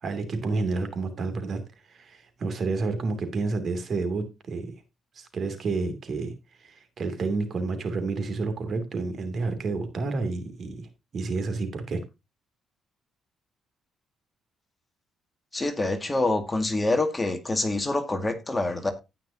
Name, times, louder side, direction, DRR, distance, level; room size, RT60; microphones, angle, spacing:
voice 1, 0.0-4.7 5.2-6.3 6.6-12.0, right 3 dB, 50° right, 2.7 m, -30 dB
voice 2, 15.5-18.9, left 2 dB, 20° left, 1.9 m, -26 dB
17.5 x 5.8 x 2.8 m
cardioid pair, 90°, 0 cm